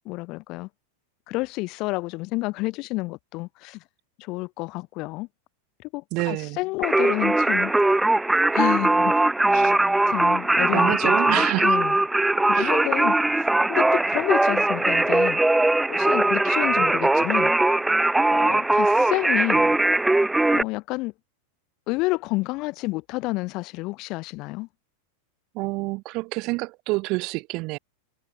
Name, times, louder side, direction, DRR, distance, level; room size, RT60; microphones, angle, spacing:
voice 1, 0.1-0.7 1.3-3.8 4.2-5.3 5.9-7.7 8.5-9.1 9.5-9.7 10.1-12.0 12.5-13.1 13.7-15.4 15.9-17.5 18.3-19.8 20.5-21.1 21.9-24.7, left 23 dB, 40° left, 3.7 m, -29 dB
voice 2, 6.1-6.6 10.7-11.8 12.5-12.8 25.5-27.8, right 24 dB, 40° right, 5.3 m, -28 dB
Singing, 6.8-20.6, right 2 dB, 5° right, 1.4 m, -20 dB
figure-of-eight pair, 90°, 0 cm